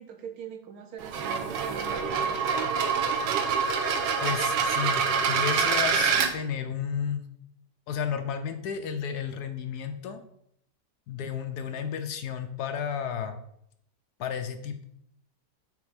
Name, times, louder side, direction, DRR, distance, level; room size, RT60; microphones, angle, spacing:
voice 1, 0.0-2.5 11.6-11.9, right 7 dB, 65° right, 6 dB, 1.1 m, -43 dB
sound 1, 1.0-6.3, right 6 dB, 80° right, 1.4 m, -26 dB
voice 2, 4.2-7.3 7.9-10.2 11.1-13.4 14.2-14.8, left 7 dB, 70° left, 7 dB, 1.1 m, -32 dB
6.9 x 3.2 x 4.9 m, 0.73 s
omnidirectional pair, 1.9 m